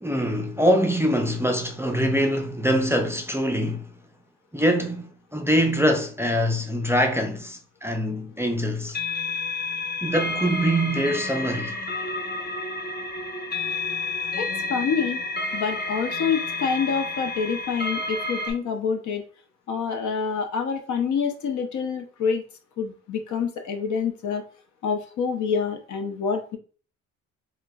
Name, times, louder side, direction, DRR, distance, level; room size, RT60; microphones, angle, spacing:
voice 1, 0.0-3.9 4.5-9.0 10.0-11.8, equal, 10° right, 0.4 m, -24 dB
sound 1, 8.9-18.5, left 3 dB, 30° left, 0.9 m, -30 dB
voice 2, 14.4-15.2 15.5-19.2 19.7-22.4 22.8-24.4 24.8-26.6, left 6 dB, 70° left, 0.8 m, -27 dB
4.4 x 2.2 x 2.3 m
cardioid pair, 90°, 30 cm